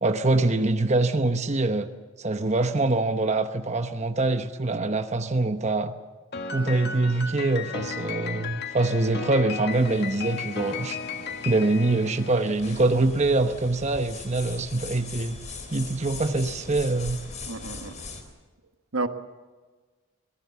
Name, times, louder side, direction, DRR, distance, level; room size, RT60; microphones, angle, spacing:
voice 1, 0.0-1.9 2.2-5.9 6.5-11.0 11.4-15.4 15.7-17.2, right 2 dB, 30° right, 7 dB, 1.0 m, -24 dB
Piano, 6.3-12.8, left 5 dB, 50° left, 1.7 m, -35 dB
sound 1, 9.7-18.2, left 3 dB, 35° left, 3.5 m, -41 dB
voice 2, 17.5-18.0 18.9-19.1, right 3 dB, 75° right, 8 dB, 1.5 m, -30 dB
25.5 x 18.5 x 7.0 m, 1.4 s
head